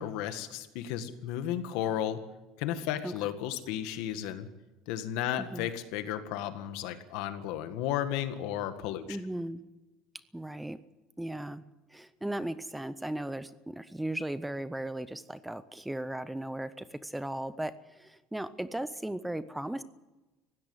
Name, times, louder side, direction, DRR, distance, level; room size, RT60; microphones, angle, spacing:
voice 1, 0.0-2.2 2.6-4.5 4.9-9.2, left 11 dB, 70° left, 9 dB, 1.8 m, -34 dB
voice 2, 5.4-5.7 9.1-9.6 10.1-10.8 11.2-11.6 11.9-19.8, right 1 dB, 5° right, 14 dB, 0.6 m, -37 dB
20.0 x 16.5 x 8.0 m, 1.1 s
cardioid pair, 170°, 0 cm